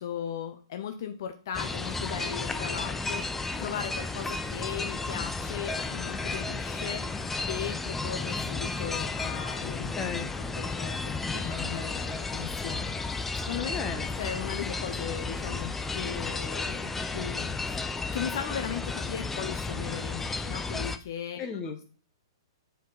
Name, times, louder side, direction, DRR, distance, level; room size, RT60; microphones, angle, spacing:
voice 1, 0.0-3.2 3.6-9.9 10.6-12.9 13.3-13.7 14.2-17.8 18.1-21.5, left 9 dB, 60° left, 6 dB, 0.7 m, -37 dB
sound 1, 1.5-21.0, left 3 dB, 10° left, 0.5 m, -33 dB
voice 2, 9.6-10.3 13.7-14.1 21.4-21.9, left 5 dB, 25° left, 7 dB, 1.2 m, -35 dB
7.2 x 4.6 x 4.0 m, 0.39 s
figure-of-eight pair, 110°, 2 cm